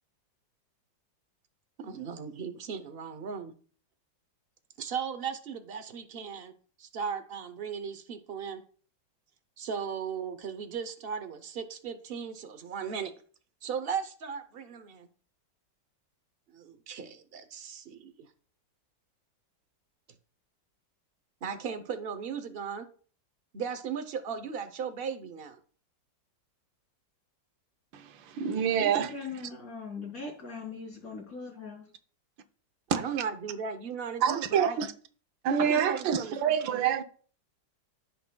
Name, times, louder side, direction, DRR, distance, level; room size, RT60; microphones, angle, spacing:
voice 1, 1.8-3.5 4.8-6.5 6.8-8.6 9.6-13.1 13.6-15.1 16.5-18.3 21.4-22.9 23.5-25.6 32.9-34.8 35.6-36.4, right 6 dB, 65° right, 0.5 m, -36 dB
voice 2, 27.9-29.1 32.9-33.0 34.2-34.9 35.4-37.0, right 8 dB, 85° right, 1.5 m, -27 dB
voice 3, 28.8-31.9 35.6-35.9, left 3 dB, 45° left, 3.6 m, -40 dB
15.5 x 5.9 x 2.2 m
omnidirectional pair, 2.0 m